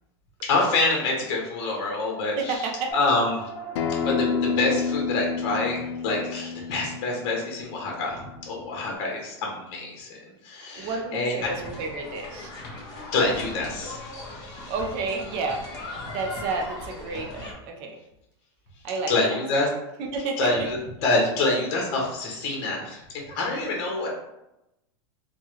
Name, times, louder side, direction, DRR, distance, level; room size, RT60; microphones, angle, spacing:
voice 1, 0.5-2.5 2.9-3.5 4.0-10.2 10.4-11.5 13.1-14.7 19.1-19.7 20.4-24.1, left 2 dB, 50° left, -1 dB, 1.1 m, -26 dB
voice 2, 2.4-2.9 10.8-12.5 14.7-15.6 16.1-18.0 18.8-19.6 20.0-20.5, right 3 dB, 40° right, 1 dB, 0.6 m, -31 dB
sound 1, 2.9-7.7, right 3 dB, 5° left, 0.8 m, -41 dB
Acoustic guitar, 3.8-9.0, left 6 dB, 85° left, 0.4 m, -30 dB
sound 2, 11.4-17.5, left 1 dB, 30° left, 1.0 m, -39 dB
3.6 x 2.2 x 3.1 m, 0.88 s
supercardioid pair, 155°, 14 cm